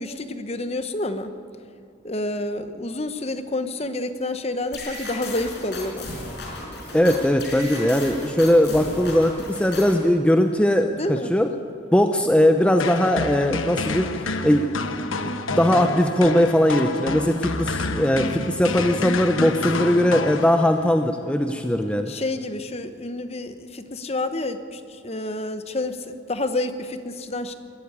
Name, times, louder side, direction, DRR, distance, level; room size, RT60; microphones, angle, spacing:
voice 1, 0.0-1.3 2.0-6.1 11.0-11.3 22.1-27.5, left 2 dB, 30° left, 10 dB, 1.0 m, -29 dB
sound 1, 4.7-10.1, left 2 dB, 55° left, 5.2 m, -35 dB
voice 2, 6.9-11.5 11.9-14.1 14.4-15.3 15.6-22.1, left 1 dB, 5° left, 6 dB, 0.7 m, -20 dB
sound 2, 12.8-20.9, left 3 dB, 85° left, 1.2 m, -29 dB
20.0 x 13.5 x 9.8 m, 2.5 s
head